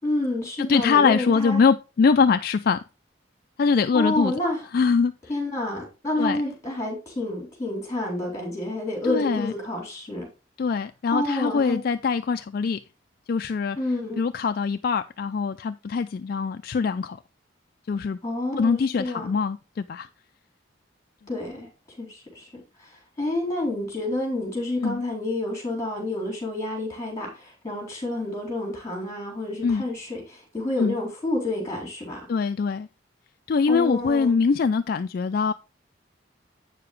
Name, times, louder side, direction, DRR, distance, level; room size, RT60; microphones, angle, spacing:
voice 1, 0.0-1.6 3.9-4.7 5.3-10.3 11.1-11.8 13.8-14.2 18.2-19.3 21.3-21.7 22.0-32.3 33.7-34.3, left 1 dB, 20° left, 4.1 m, -29 dB
voice 2, 0.7-2.8 3.6-4.3 4.7-5.1 6.2-6.4 9.0-9.5 10.6-12.8 13.3-13.8 14.2-17.2 17.9-18.2 18.6-20.1 24.8-25.0 29.6-29.8 30.8-30.9 32.3-32.9 33.5-35.5, left 5 dB, 50° left, 0.3 m, -23 dB
8.6 x 6.8 x 3.2 m
head